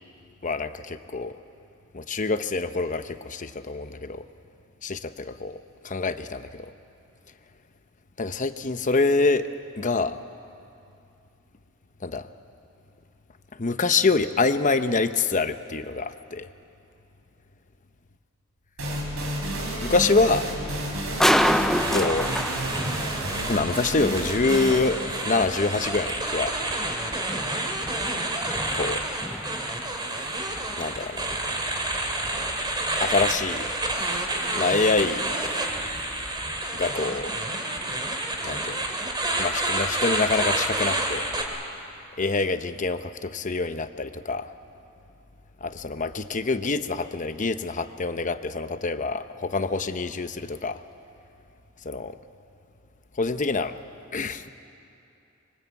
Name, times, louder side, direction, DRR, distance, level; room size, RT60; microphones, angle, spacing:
voice 1, 0.4-1.3 1.9-4.2 4.8-6.7 8.2-9.5 9.8-10.2 12.0-12.3 13.6-16.5 19.8-20.5 21.9-22.3 23.5-26.5 28.7-29.0 30.8-31.3 33.0-33.7 34.5-35.3 36.8-37.3 38.4-38.8 39.4-41.3 42.2-44.5 45.6-50.8 51.8-52.1 53.2-53.7 54.1-54.5, left 3 dB, 40° left, 10 dB, 0.9 m, -26 dB
sound 1, 18.8-26.2, right 1 dB, 85° right, 5.3 m, -31 dB
sound 2, 19.6-36.3, equal, ahead, 0.7 m, -31 dB
sound 3, 21.8-41.4, right 2 dB, 20° right, 2.9 m, -29 dB
26.0 x 23.5 x 8.4 m, 2.6 s
head